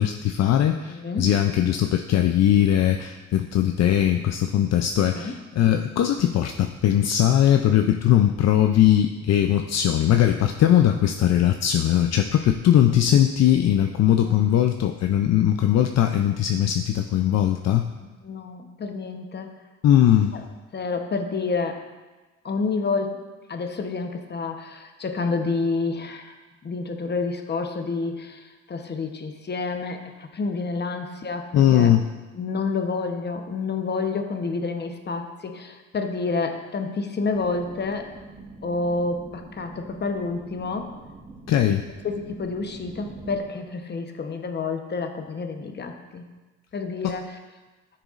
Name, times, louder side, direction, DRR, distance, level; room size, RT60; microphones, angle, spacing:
voice 1, 0.0-17.9 19.8-20.4 31.5-32.0 41.5-41.8, left 11 dB, 60° left, 6 dB, 0.5 m, -20 dB
voice 2, 0.9-1.3 5.0-5.3 14.3-14.5 18.2-19.5 20.7-21.8 22.4-23.2 23.5-26.3 26.6-31.9 32.3-38.1 38.6-40.9 42.0-46.3 46.7-47.4, left 4 dB, 35° left, 5 dB, 0.9 m, -29 dB
sound 1, 37.3-43.4, right 3 dB, 20° right, 1.4 m, -43 dB
13.0 x 6.7 x 2.5 m, 1.2 s
cardioid pair, 90°, 30 cm